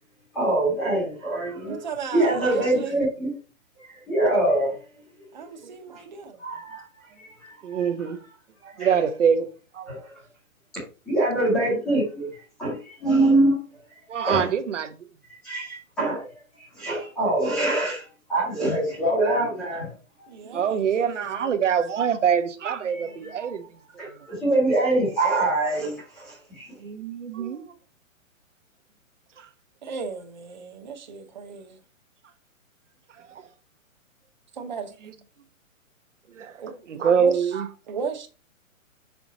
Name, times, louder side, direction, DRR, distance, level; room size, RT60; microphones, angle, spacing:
voice 1, 0.3-1.8 2.1-3.3 3.9-4.7 6.4-6.8 7.2-7.8 8.8-8.9 9.9-10.0 11.1-12.3 12.6-13.6 14.3-14.4 15.4-16.3 16.8-19.9 22.9-23.0 24.0-26.7, right 2 dB, ahead, 0.8 m, -24 dB
voice 2, 1.6-2.9 5.3-6.4 20.3-21.5 22.9-23.3 27.2-27.4 29.8-31.8 34.5-34.9 36.6-36.7 37.2-37.3 37.9-38.3, right 5 dB, 35° right, 0.9 m, -35 dB
voice 3, 5.6-6.0 6.3-6.4 6.7-6.9 7.6-8.2 8.6-9.5 9.7-10.1 14.1-15.0 18.8-19.0 20.4-24.3 26.8-27.7 29.4-29.5 33.1-33.5 35.0-35.1 36.3-37.7, right 7 dB, 60° right, 1.1 m, -26 dB
5.8 x 5.0 x 4.1 m
hypercardioid pair, 180°, 41 cm